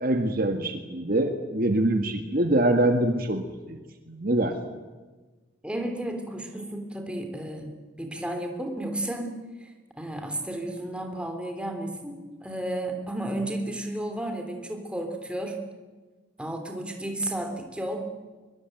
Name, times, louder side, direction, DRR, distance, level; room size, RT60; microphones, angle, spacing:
voice 1, 0.0-3.8 4.1-4.6, right 1 dB, 45° right, 6 dB, 1.7 m, -24 dB
voice 2, 5.6-7.7 8.0-9.3 9.6-15.6 16.4-18.2, right 1 dB, 5° right, 4 dB, 3.3 m, -33 dB
23.0 x 23.0 x 9.1 m, 1.3 s
head